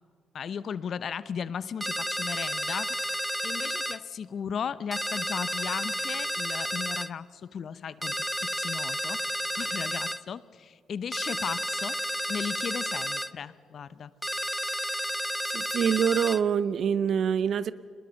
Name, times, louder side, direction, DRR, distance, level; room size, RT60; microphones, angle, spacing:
voice 1, 0.3-2.9 3.4-9.2 9.6-12.0 12.3-14.1, left 7 dB, 55° left, 0.7 m, -36 dB
sound 1, 1.8-4.0 4.9-7.1 8.0-10.2 11.1-13.3 14.2-16.4, equal, ahead, 0.5 m, -31 dB
voice 2, 15.4-17.7, right 8 dB, 60° right, 0.6 m, -25 dB
23.5 x 20.5 x 7.0 m
cardioid pair, 90°, 0 cm